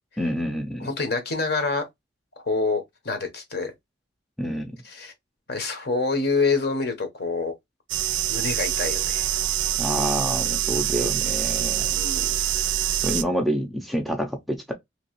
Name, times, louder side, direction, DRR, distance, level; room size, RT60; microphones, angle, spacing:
voice 1, 0.2-0.9 4.4-4.8 9.8-12.0 13.0-14.7, equal, ahead, 0.5 m, -28 dB
voice 2, 0.8-1.9 2.4-3.7 4.8-5.1 5.5-7.5 8.3-9.3 11.8-12.3, left 3 dB, 55° left, 1.1 m, -26 dB
sound 1, 7.9-13.2, right 11 dB, 65° right, 0.4 m, -25 dB
3.0 x 3.0 x 3.0 m
head